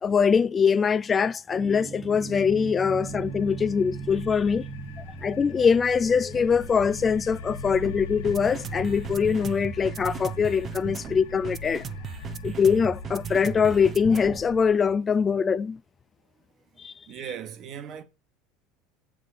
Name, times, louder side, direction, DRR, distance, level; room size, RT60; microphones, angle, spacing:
voice 1, 0.0-4.7 5.2-11.8 12.4-15.8 16.8-16.9, left 6 dB, 30° left, 0.3 m, -23 dB
sound 1, 1.5-14.6, right 7 dB, 35° right, 0.6 m, -38 dB
sound 2, 3.0-14.8, left 7 dB, 80° left, 0.6 m, -42 dB
voice 2, 17.1-18.0, right 8 dB, 50° right, 1.3 m, -37 dB
7.5 x 3.7 x 4.9 m
supercardioid pair, 95°, 0 cm